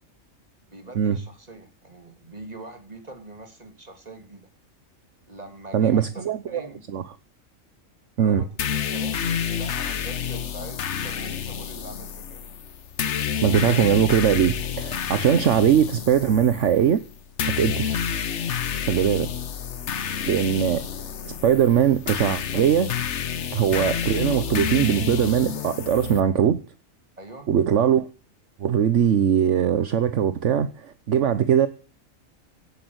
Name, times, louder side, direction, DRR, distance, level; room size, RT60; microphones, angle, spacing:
voice 1, 0.7-4.5 5.3-6.8 8.2-9.2 9.5-12.5 27.2-27.5, right 2 dB, 30° right, 2.9 m, -43 dB
voice 2, 5.7-6.6 6.9-7.0 8.2-8.4 13.4-17.0 17.6-18.0 18.9-19.3 20.3-20.9 21.4-22.9 23.5-26.6 27.5-28.1 28.6-31.7, right 9 dB, 65° right, 1.2 m, -21 dB
sound 1, 8.6-26.2, left 7 dB, 60° left, 1.2 m, -29 dB
17.0 x 8.4 x 8.0 m
omnidirectional pair, 1.4 m